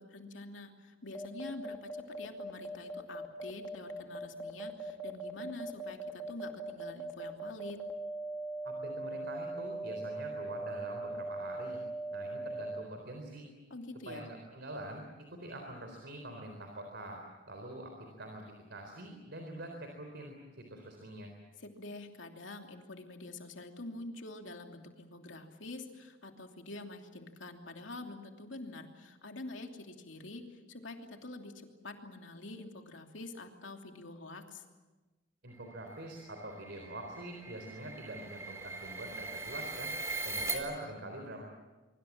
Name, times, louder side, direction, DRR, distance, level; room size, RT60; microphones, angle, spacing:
voice 1, 0.0-7.8 13.7-14.3 21.6-34.6, left 2 dB, 75° left, 3 dB, 3.0 m, -46 dB
sound 1, 1.1-12.8, right 2 dB, 10° left, 2.4 m, -40 dB
voice 2, 8.6-11.8 12.1-13.5 14.1-15.0 15.3-17.2 17.5-18.4 18.7-21.3 35.4-39.9 40.2-41.4, right 1 dB, 65° right, 3 dB, 4.0 m, -44 dB
sound 2, 35.8-40.6, right 3 dB, 15° right, 4.3 m, -40 dB
24.5 x 24.5 x 7.4 m, 1.2 s
head